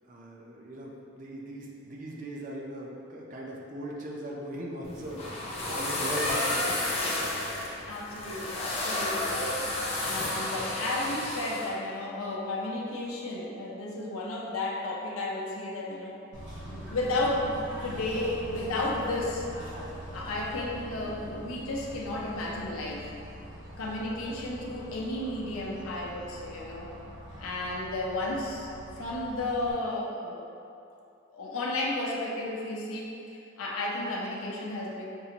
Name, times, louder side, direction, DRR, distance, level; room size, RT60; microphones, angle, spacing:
voice 1, 0.1-6.7, right 1 dB, 35° right, -2 dB, 0.4 m, -39 dB
sound 1, 4.8-11.7, left 1 dB, 30° left, 0.5 m, -31 dB
voice 2, 7.3-9.5 9.9-16.2 16.7-17.5 17.8-19.5 20.1-23.1 23.8-26.9 27.4-28.7 29.0-30.5 31.3-33.1 33.6-35.1, left 2 dB, 80° left, -3 dB, 0.6 m, -33 dB
Bird / Train, 16.3-29.7, equal, 60° right, 1.2 m, -43 dB
5.3 x 2.4 x 2.9 m, 2.6 s
head